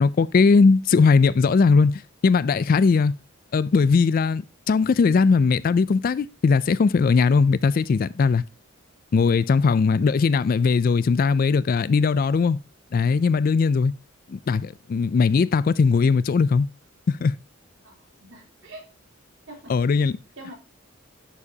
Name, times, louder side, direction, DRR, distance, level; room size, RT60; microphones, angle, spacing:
voice 1, 0.0-3.1 3.5-8.4 9.1-12.6 12.9-13.9 14.3-16.7 17.1-17.4 19.7-20.2, left 4 dB, 45° left, 0.3 m, -19 dB
voice 2, 17.8-18.9 19.5-19.8 20.4-20.5, right 1 dB, 65° right, 3.3 m, -44 dB
11.0 x 4.8 x 2.8 m
head